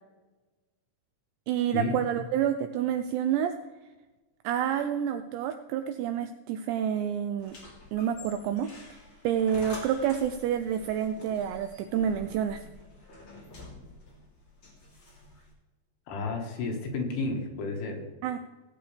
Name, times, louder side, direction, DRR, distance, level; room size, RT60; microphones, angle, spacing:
voice 1, 1.5-3.5 4.4-7.6 7.9-8.7 9.2-12.6 18.2-18.4, right 9 dB, 85° right, 8 dB, 2.5 m, -28 dB
sound 1, 7.4-15.5, left 2 dB, 30° left, 3.1 m, -48 dB
voice 2, 16.1-18.1, left 3 dB, 80° left, 1 dB, 4.3 m, -32 dB
17.5 x 8.8 x 3.4 m, 1.2 s
omnidirectional pair, 5.6 m